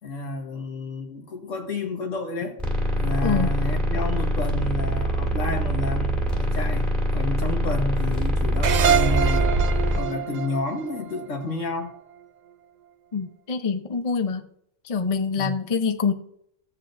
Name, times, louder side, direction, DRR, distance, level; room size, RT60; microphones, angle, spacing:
voice 1, 0.0-2.6 3.0-9.5 9.9-11.9 15.4-15.5, left 2 dB, 80° left, 1.7 m, -30 dB
sound 1, 2.6-10.0, equal, ahead, 1.9 m, -24 dB
voice 2, 3.2-3.6 13.1-14.5 14.8-16.1, left 5 dB, 35° left, 0.7 m, -25 dB
sound 2, 8.6-11.9, right 8 dB, 85° right, 0.3 m, -25 dB
16.0 x 7.4 x 2.6 m
omnidirectional pair, 1.3 m